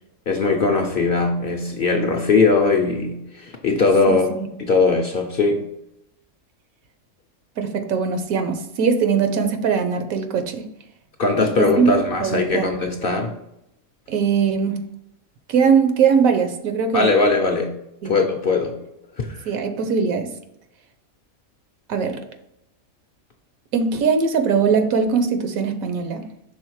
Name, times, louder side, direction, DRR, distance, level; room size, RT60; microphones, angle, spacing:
voice 1, 0.3-4.3 4.6-5.6 11.2-13.3 16.9-17.7 18.0-18.8 19.2-19.4, left 3 dB, 50° left, 3 dB, 0.7 m, -20 dB
voice 2, 4.1-4.5 7.6-10.7 11.6-12.7 14.1-14.8 15.5-17.1 18.0-18.2 19.5-20.3 21.9-22.2 23.7-26.3, right 6 dB, 75° right, 7 dB, 1.2 m, -21 dB
5.6 x 3.7 x 4.6 m, 0.83 s
omnidirectional pair, 1.5 m